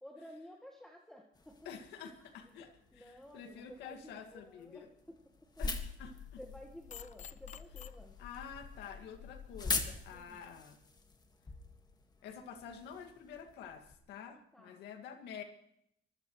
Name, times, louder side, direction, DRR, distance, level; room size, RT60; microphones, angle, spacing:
voice 1, 0.0-1.7 2.5-2.6 2.9-5.5 6.4-8.2 10.1-10.4 14.5-14.8, left 1 dB, 5° left, 1 dB, 1.6 m, -53 dB
sound 1, 1.3-14.0, left 3 dB, 25° left, 1.9 m, -44 dB
voice 2, 1.7-4.9 5.6-6.4 8.2-10.8 12.2-15.4, left 7 dB, 80° left, 6 dB, 2.1 m, -49 dB
sound 2, 5.6-9.9, left 8 dB, 45° left, 0.8 m, -51 dB
24.0 x 16.0 x 3.2 m, 0.74 s
cardioid pair, 110°, 17 cm